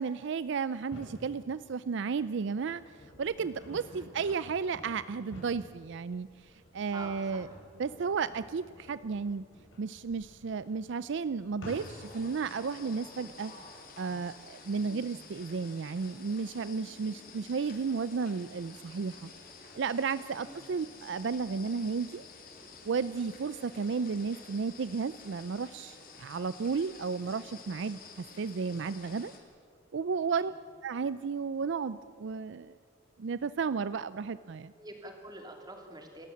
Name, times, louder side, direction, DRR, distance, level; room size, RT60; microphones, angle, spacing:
voice 1, 0.0-2.8 3.2-7.5 7.8-9.4 9.8-13.5 14.0-19.3 19.7-22.3 22.9-29.3 29.9-30.5 30.8-32.7 33.2-34.7, right 5 dB, 65° right, 15 dB, 0.4 m, -33 dB
sound 1, 0.7-1.2 1.9-12.2, left 1 dB, 75° left, 8.0 m, -51 dB
voice 2, 6.9-7.5 14.7-15.1 20.3-20.6 30.4-30.5 34.8-36.3, right 1 dB, 20° right, 2 dB, 3.3 m, -47 dB
sound 2, 11.7-29.4, left 4 dB, 50° left, 3.2 m, -51 dB
27.5 x 14.0 x 8.5 m, 2.3 s
head